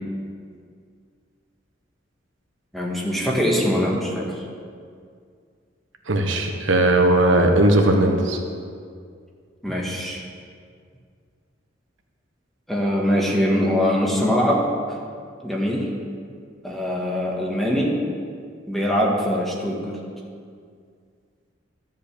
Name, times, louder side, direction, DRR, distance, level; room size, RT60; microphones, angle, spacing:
voice 1, 2.7-4.4 9.6-10.2 12.7-14.7 15.4-15.9 16.6-18.0 18.7-20.0, equal, ahead, -3 dB, 1.8 m, -22 dB
voice 2, 6.1-8.4, right 1 dB, 85° right, 3 dB, 1.2 m, -18 dB
12.5 x 5.5 x 8.5 m, 2.2 s
head